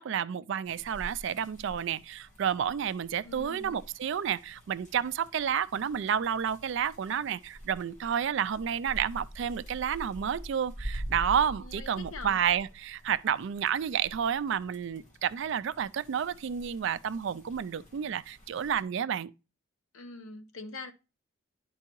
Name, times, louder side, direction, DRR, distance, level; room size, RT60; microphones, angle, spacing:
voice 1, 0.0-19.3, right 8 dB, 60° right, 0.3 m, -30 dB
sound 1, 0.6-18.8, equal, 35° left, 1.3 m, -46 dB
voice 2, 3.2-3.8 11.5-12.4 19.9-20.9, left 3 dB, 75° left, 0.8 m, -43 dB
10.5 x 4.5 x 3.0 m
head